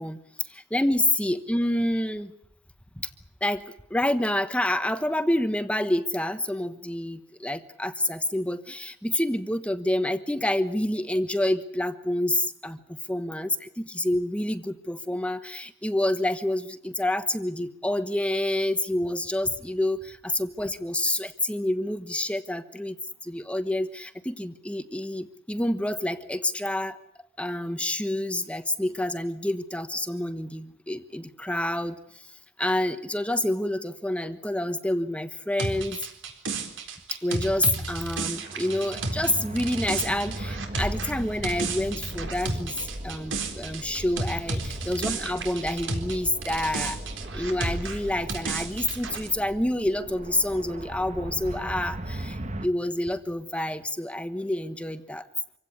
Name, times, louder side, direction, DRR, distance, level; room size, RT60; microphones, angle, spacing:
voice 1, 0.0-2.3 3.0-3.1 3.4-3.6 3.9-23.0 23.2-27.0 27.4-36.1 37.2-47.0 47.3-55.3, left 1 dB, 5° left, 10 dB, 1.1 m, -28 dB
sound 1, 35.6-46.2 46.4-49.3, right 3 dB, 70° right, 4.0 m, -32 dB
sound 2, 38.4-52.7, right 1 dB, 35° right, 1.4 m, -38 dB
26.0 x 16.5 x 9.8 m, 0.74 s
head